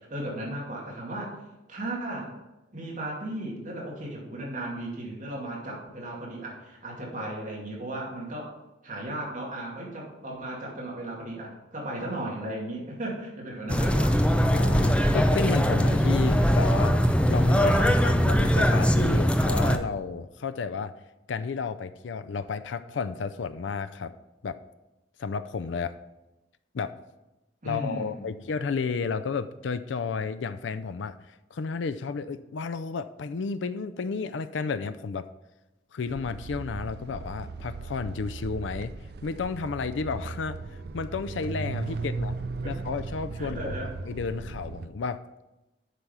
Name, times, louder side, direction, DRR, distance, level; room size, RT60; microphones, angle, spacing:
voice 1, 0.1-1.3 1.7-2.3 2.7-8.5 8.8-14.2 27.6-28.3 42.6-42.7 43.4-43.9, right 1 dB, 45° right, -2 dB, 2.2 m, -35 dB
sound 1, 13.7-19.8, equal, 5° left, 0.5 m, -21 dB
voice 2, 14.5-17.0 17.3-20.9 21.3-24.1 24.4-24.6 25.2-26.0 26.7-26.9 27.6-31.2 31.5-35.3 35.9-38.9 39.2-40.6 40.9-42.3 42.6-43.7 44.1-45.2, left 5 dB, 90° left, 11 dB, 0.4 m, -32 dB
sound 2, 36.1-44.9, right 3 dB, 60° right, 0.5 m, -37 dB
8.2 x 6.0 x 5.5 m, 1.0 s
head